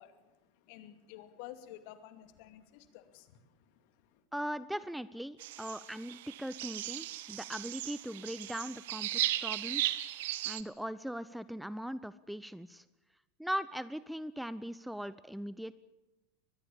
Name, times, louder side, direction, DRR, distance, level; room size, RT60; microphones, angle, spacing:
voice 1, 0.0-4.2, left 12 dB, 55° left, 2.4 m, -52 dB
voice 2, 4.3-10.0 10.4-12.8 13.4-15.8, equal, ahead, 0.7 m, -40 dB
sound 1, 5.4-10.6, right 15 dB, 65° right, 1.1 m, -36 dB
23.5 x 21.5 x 7.0 m
figure-of-eight pair, 85°, 0 cm